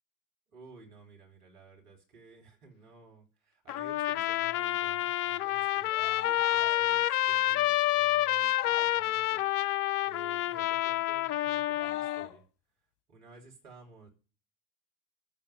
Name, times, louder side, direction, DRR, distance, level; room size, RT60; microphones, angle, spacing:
voice 1, 0.5-12.4 13.1-14.1, right 3 dB, 80° right, 1 dB, 3.4 m, -55 dB
Trumpet, 3.7-12.3, left 14 dB, 75° left, 0.6 m, -28 dB
sound 1, 5.8-6.9 8.6-9.3 11.6-12.4, left 15 dB, 60° left, 1.7 m, -46 dB
14.0 x 5.3 x 7.7 m, 0.38 s
hypercardioid pair, 60°, 45 cm